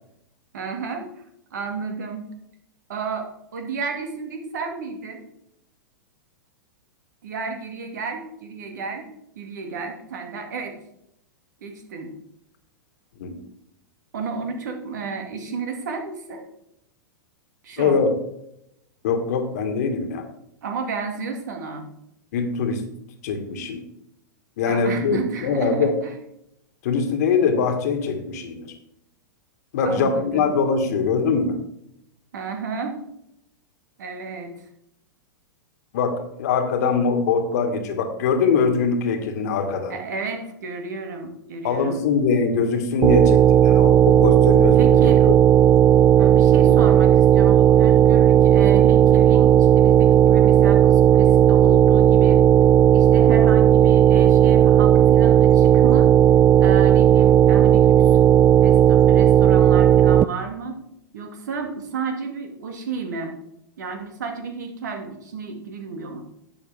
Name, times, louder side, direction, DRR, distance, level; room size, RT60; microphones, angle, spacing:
voice 1, 0.5-1.1 1.5-2.3 2.9-5.2 7.2-9.1 9.4-10.8 11.6-12.1 14.1-16.5 17.6-18.0 20.6-21.9 24.6-26.1 29.8-30.5 32.3-33.0 34.0-34.6 39.9-42.0 44.7-45.3 46.2-52.4 52.9-56.1 56.6-58.2 58.6-60.8 61.1-63.4 63.8-66.2, right 4 dB, 60° right, 4 dB, 2.3 m, -32 dB
voice 2, 17.8-18.1 19.0-20.3 22.3-22.9 23.2-23.8 24.6-26.0 26.8-28.7 29.7-31.6 35.9-40.0 41.6-45.3, left 5 dB, 55° left, 6 dB, 1.8 m, -22 dB
sound 1, 43.0-60.2, right 10 dB, 20° right, 0.4 m, -14 dB
11.5 x 8.4 x 3.6 m, 0.78 s
figure-of-eight pair, 100°, 11 cm